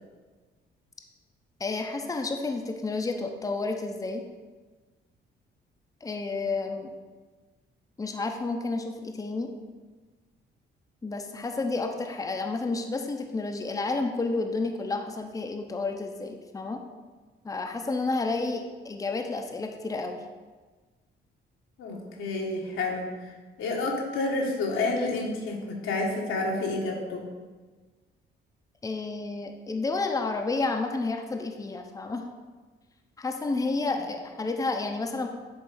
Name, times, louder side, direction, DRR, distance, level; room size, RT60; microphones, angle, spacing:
voice 1, 1.6-4.2 6.0-6.9 8.0-9.5 11.0-16.8 17.4-20.2 28.8-32.2 33.2-35.3, left 3 dB, 15° left, 4 dB, 0.6 m, -30 dB
voice 2, 21.8-23.3 23.6-27.2, left 2 dB, 85° left, -1 dB, 1.4 m, -29 dB
7.8 x 3.2 x 5.5 m, 1.3 s
cardioid pair, 90°, 20 cm